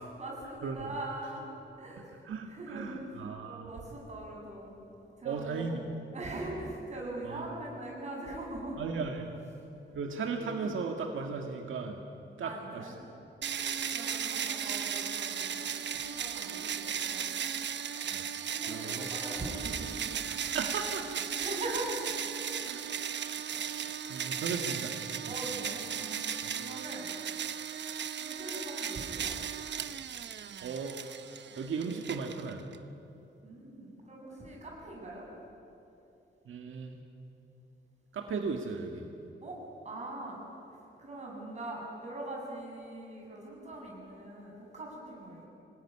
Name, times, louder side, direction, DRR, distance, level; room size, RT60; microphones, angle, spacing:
voice 1, 0.2-1.5 1.8-2.1 2.5-3.1 3.4-4.7 5.2-5.8 6.1-9.1 9.9-10.3 12.4-13.0 13.5-17.3 18.5-20.1 20.4-20.5 21.3-22.8 25.3-26.3 26.5-27.1 28.2-29.3 33.4-35.2 39.4-39.6 39.8-40.4 41.0-45.4, right 1 dB, 35° right, -2 dB, 7.4 m, -42 dB
voice 2, 2.2-3.7 5.2-5.8 7.2-7.5 8.8-9.3 9.9-12.0 12.4-12.9 18.1-18.3 18.7-19.1 20.3-21.2 21.7-21.8 22.7-22.8 23.6-25.0 25.2-25.4 26.4-26.5 30.6-31.0 31.6-32.6 36.5-37.0 38.1-39.1, right 5 dB, 85° right, 3 dB, 1.9 m, -36 dB
sound 1, 13.4-32.8, right 8 dB, 65° right, 1.0 m, -36 dB
26.0 x 19.0 x 10.0 m, 2.8 s
wide cardioid pair, 165°, 20 cm